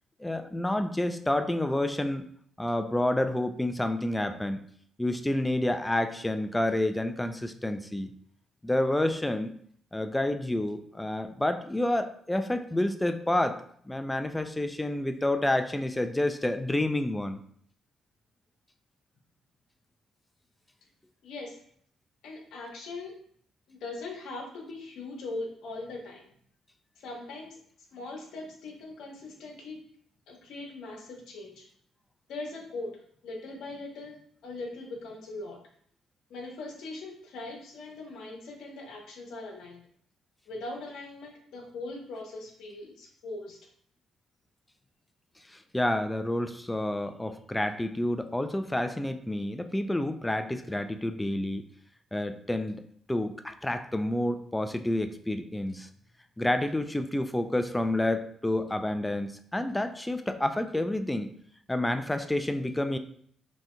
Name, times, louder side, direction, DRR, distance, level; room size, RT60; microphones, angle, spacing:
voice 1, 0.2-2.3 2.6-4.6 5.0-8.1 8.6-9.5 9.9-17.4 45.5-51.6 52.1-52.8 53.1-55.9 56.4-61.3 61.7-63.0, left 1 dB, 10° left, 8 dB, 0.4 m, -29 dB
voice 2, 21.2-21.6 22.2-23.1 23.7-26.3 27.0-27.6 27.9-29.8 30.3-31.7 32.3-35.6 36.3-39.8 40.5-43.6, left 2 dB, 80° left, 0 dB, 1.1 m, -40 dB
6.1 x 2.8 x 2.2 m, 0.62 s
cardioid pair, 90°, 0 cm